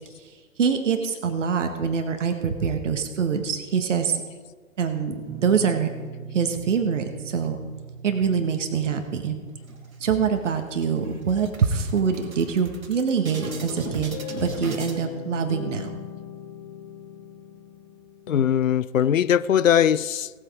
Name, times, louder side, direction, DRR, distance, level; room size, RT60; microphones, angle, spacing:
voice 1, 0.6-4.2 4.8-5.9 6.3-7.6 8.0-9.4 10.0-15.9, right 6 dB, 60° right, 6 dB, 1.7 m, -24 dB
Guitar, 5.3-10.5, right 6 dB, 15° right, 1.1 m, -40 dB
sound 1, 9.7-10.4 10.8-10.9 11.2-15.0, right 2 dB, 80° right, 2.4 m, -38 dB
sound 2, 13.3-18.5, left 9 dB, 25° left, 0.9 m, -38 dB
voice 2, 18.3-20.4, left 9 dB, 70° left, 20 dB, 0.6 m, -20 dB
17.0 x 8.0 x 5.0 m, 1.5 s
figure-of-eight pair, 120°, 41 cm